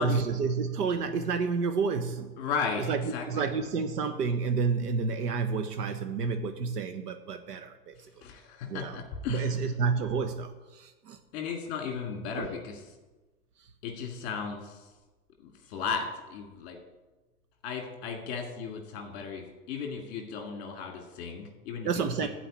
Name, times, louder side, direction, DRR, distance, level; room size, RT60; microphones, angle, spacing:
voice 1, 0.0-2.4 2.8-8.2 8.7-9.0 9.3-11.2 12.3-12.5 13.6-13.7 21.8-22.3, right 5 dB, 90° right, 7 dB, 1.1 m, -30 dB
voice 2, 2.4-3.5 8.2-9.5 11.3-12.8 13.8-14.8 15.4-16.8 17.6-21.9 22.2-22.3, left 6 dB, 25° left, 2 dB, 2.0 m, -35 dB
14.0 x 4.8 x 8.6 m, 1.2 s
supercardioid pair, 175°, 46 cm